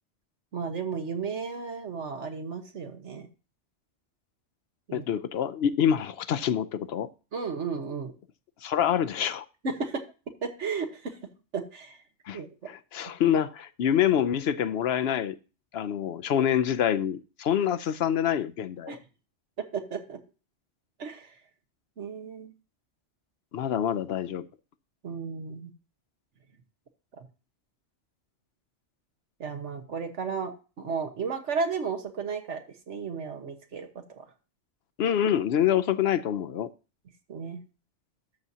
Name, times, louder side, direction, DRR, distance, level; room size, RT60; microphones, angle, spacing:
voice 1, 0.5-3.3 4.9-5.0 7.3-8.1 9.6-10.0 10.4-11.2 11.5-12.0 12.3-12.5 18.9-19.0 19.7-20.2 21.0-21.3 22.0-22.5 25.0-25.7 27.2-27.3 29.4-30.5 30.8-34.3 37.3-37.6, right 5 dB, 85° right, 1.6 m, -33 dB
voice 2, 4.9-7.1 8.6-9.5 12.3-12.4 12.7-15.4 15.7-19.0 23.5-24.4 35.0-36.7, left 9 dB, 65° left, 0.8 m, -26 dB
12.5 x 7.3 x 2.8 m
omnidirectional pair, 1.2 m